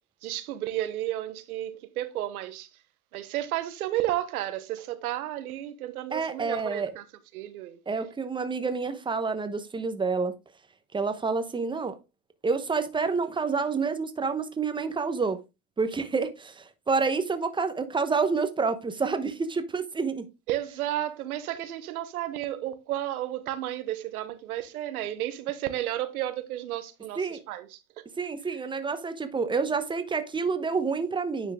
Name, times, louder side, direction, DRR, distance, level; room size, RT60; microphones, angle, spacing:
voice 1, 0.2-2.7 3.1-7.0 7.3-7.8 20.5-28.0, right 13 dB, 80° right, 1.2 m, -32 dB
voice 2, 6.1-6.9 7.9-10.3 10.9-12.0 12.4-15.4 15.8-20.3 27.2-27.4 28.2-31.5, right 4 dB, 10° right, 1.0 m, -28 dB
9.9 x 4.4 x 3.6 m
hypercardioid pair, 110°, 43 cm